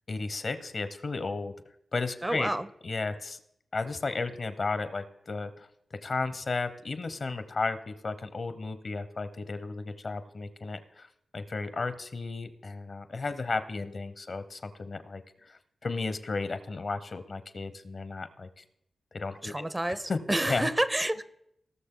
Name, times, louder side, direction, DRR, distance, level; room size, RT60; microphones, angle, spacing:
voice 1, 0.1-1.5 1.9-2.5 2.8-3.4 3.7-5.7 6.0-11.1 11.3-18.6 19.1-20.2 20.4-20.7, left 3 dB, 60° left, 12 dB, 0.9 m, -34 dB
voice 2, 2.2-2.7 19.4-21.2, right 1 dB, 20° right, 16 dB, 0.5 m, -29 dB
18.0 x 6.4 x 3.8 m, 0.75 s
cardioid pair, 50°, 0 cm